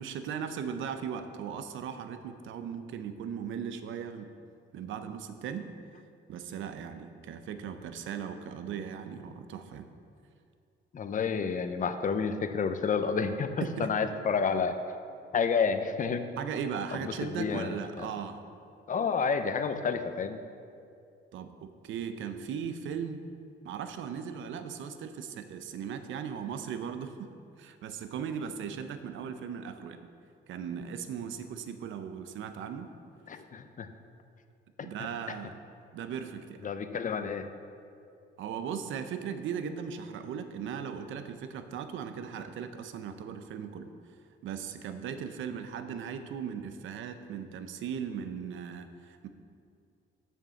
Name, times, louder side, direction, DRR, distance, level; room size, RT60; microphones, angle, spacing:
voice 1, 0.0-4.3 4.7-5.7 6.3-9.9 13.6-13.9 16.4-18.4 21.3-23.2 23.6-27.3 27.6-30.0 30.5-32.9 34.8-35.5 35.9-36.6 38.4-43.9 44.4-49.3, right 7 dB, 75° right, 8 dB, 0.7 m, -38 dB
voice 2, 10.9-14.8 15.3-16.3 17.0-18.0 18.9-20.4 33.3-33.9 36.6-37.5, left 5 dB, 40° left, 9 dB, 0.7 m, -30 dB
7.3 x 6.3 x 7.0 m, 2.4 s
cardioid pair, 90°, 20 cm